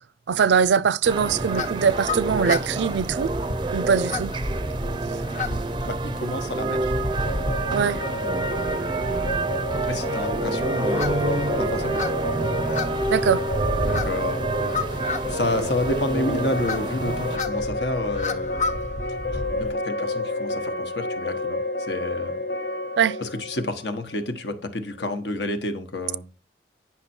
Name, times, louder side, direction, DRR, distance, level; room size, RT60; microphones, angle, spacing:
voice 1, 0.3-3.3 3.7-4.3 7.7-8.0 13.1-13.4 23.0-23.2, right 6 dB, 90° right, 0.4 m, -22 dB
sound 1, 1.0-17.4, right 2 dB, 25° right, 0.4 m, -28 dB
sound 2, 1.1-19.7, left 2 dB, 45° left, 0.8 m, -32 dB
voice 2, 5.8-7.0 8.1-8.9 9.7-12.1 13.8-14.5 14.9-18.8 19.3-22.4 23.2-26.2, left 2 dB, 80° left, 1.2 m, -30 dB
sound 3, 7.0-24.8, left 1 dB, 65° left, 0.9 m, -31 dB
9.8 x 5.9 x 4.4 m
head